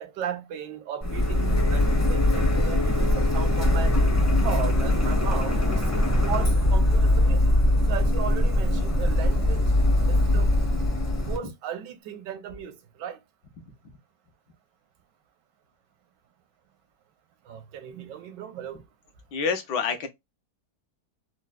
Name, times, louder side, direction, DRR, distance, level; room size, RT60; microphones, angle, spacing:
voice 1, 0.0-3.9 4.4-5.8 6.3-7.6 7.9-9.6 10.1-10.5 11.2-13.2 17.5-18.8, right 9 dB, 85° right, 1.3 m, -36 dB
Printer, 1.0-11.4, left 1 dB, 20° left, 0.4 m, -22 dB
voice 2, 19.3-20.1, left 5 dB, 80° left, 1.4 m, -27 dB
4.4 x 2.1 x 2.3 m
omnidirectional pair, 1.9 m